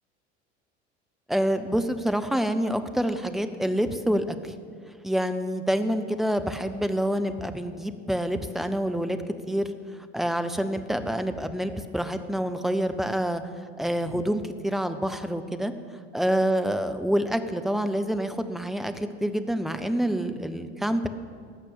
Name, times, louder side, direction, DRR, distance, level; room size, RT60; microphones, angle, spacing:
voice 1, 1.3-4.5 5.0-9.2 9.5-9.7 10.1-13.4 13.8-15.7 16.1-21.1, equal, ahead, 8 dB, 0.5 m, -27 dB
14.5 x 5.9 x 7.0 m, 2.1 s
figure-of-eight pair, 70°, 35 cm